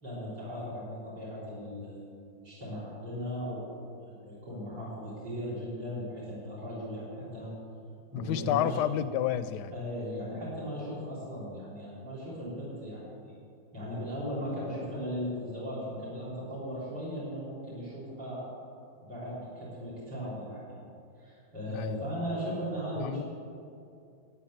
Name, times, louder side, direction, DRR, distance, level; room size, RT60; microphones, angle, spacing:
voice 1, 0.0-7.5 8.1-8.8 9.7-13.3 13.7-18.4 19.0-20.8 21.2-23.2, equal, 85° right, -9 dB, 4.4 m, -37 dB
voice 2, 8.1-9.7 21.7-22.0 23.0-23.2, left 11 dB, 90° left, 14 dB, 1.2 m, -30 dB
13.5 x 8.3 x 7.8 m, 2.6 s
omnidirectional pair, 1.8 m